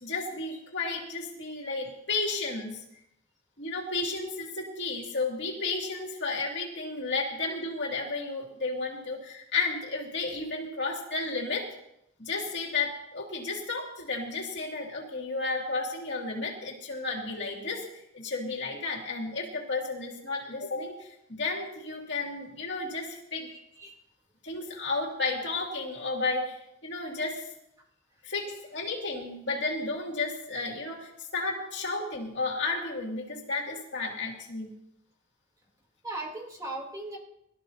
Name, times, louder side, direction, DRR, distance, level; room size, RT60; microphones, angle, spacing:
voice 1, 0.0-2.8 3.6-11.7 12.2-23.5 24.4-27.5 28.2-34.7, left 3 dB, 55° left, -1 dB, 2.6 m, -33 dB
voice 2, 23.5-24.0 36.0-37.2, right 2 dB, 20° right, -1 dB, 3.3 m, -38 dB
22.0 x 13.0 x 2.9 m, 0.80 s
head